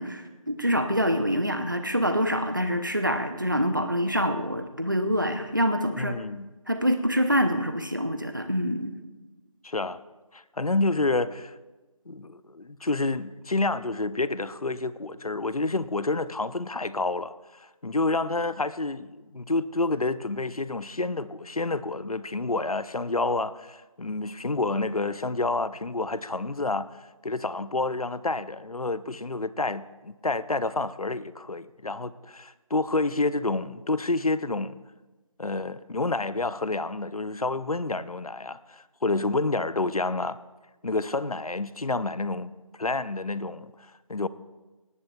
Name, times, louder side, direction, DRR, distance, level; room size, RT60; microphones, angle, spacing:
voice 1, 0.0-6.2 6.7-9.0, equal, 35° right, 0.7 m, -26 dB
voice 2, 6.0-6.5 9.6-10.0 10.3-11.5 12.1-26.9 27.2-34.8 35.4-40.4 40.8-42.5 42.8-43.7 44.1-44.3, left 3 dB, 85° left, 0.6 m, -29 dB
18.5 x 14.0 x 2.3 m
figure-of-eight pair, 175°, 18 cm